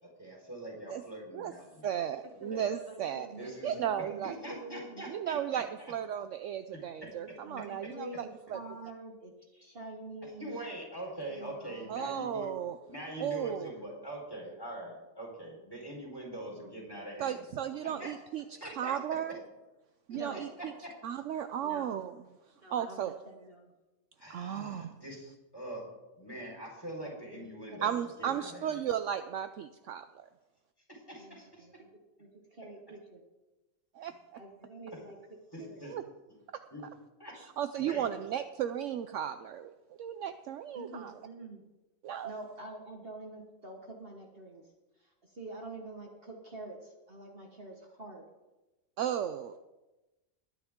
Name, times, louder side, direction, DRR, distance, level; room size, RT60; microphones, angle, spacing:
voice 1, 0.0-1.8 2.3-2.6 3.3-5.6 10.2-12.5 12.9-17.4 17.8-18.1 18.5-18.9 20.1-20.4 20.8-20.9 24.2-25.9 26.1-28.8 30.9-31.7 34.9-35.0 35.5-35.9 36.7-36.8 37.2-37.3 37.8-38.1, right 1 dB, 15° left, -2 dB, 4.3 m, -43 dB
voice 2, 1.8-3.3 3.6-4.4 5.1-8.6 11.9-12.8 13.2-13.7 17.2-18.4 18.8-19.4 20.1-20.7 21.0-22.2 22.7-23.1 24.3-24.9 27.8-30.3 34.0-34.4 35.9-36.0 37.4-39.7 40.0-41.1 42.0-42.3 49.0-49.6, right 9 dB, 70° right, 9 dB, 0.9 m, -35 dB
voice 3, 2.4-5.0 7.4-10.6 11.2-12.2 16.6-16.7 17.9-18.1 18.5-18.6 20.1-20.4 21.6-21.9 22.6-23.7 27.0-27.8 31.2-31.9 32.2-33.2 34.3-35.2 35.6-35.8 40.7-41.6 42.2-44.7 45.0-48.2, right 2 dB, 45° right, 1 dB, 1.6 m, -47 dB
21.0 x 9.7 x 3.7 m, 1.1 s
omnidirectional pair, 1.5 m